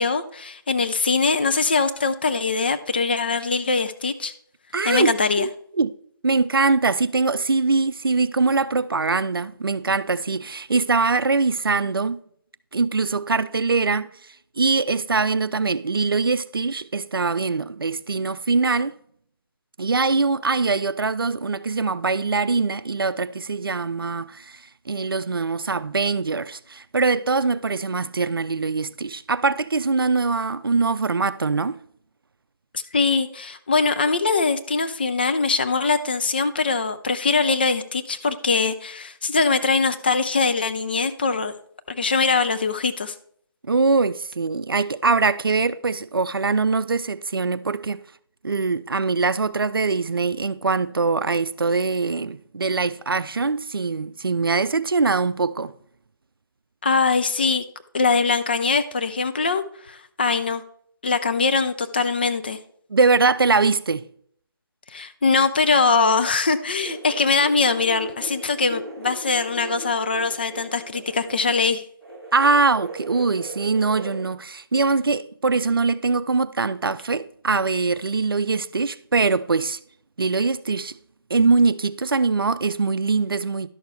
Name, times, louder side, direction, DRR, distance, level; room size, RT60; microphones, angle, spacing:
voice 1, 0.0-4.3 4.8-5.4 32.7-41.5 41.9-43.1 56.8-57.6 57.9-60.6 61.0-62.6 64.9-71.8, left 4 dB, 25° left, 0.4 m, -22 dB
voice 2, 4.7-5.5 5.8-5.9 6.2-12.2 12.7-14.1 14.6-18.9 19.8-31.8 43.7-48.0 48.4-55.7 62.9-64.0 72.3-79.8 80.2-81.0 81.3-83.7, right 4 dB, 70° right, 0.5 m, -22 dB
sound 1, 66.8-71.7 72.0-74.2, right 1 dB, ahead, 1.4 m, -38 dB
11.5 x 6.6 x 3.3 m
figure-of-eight pair, 155°, 12 cm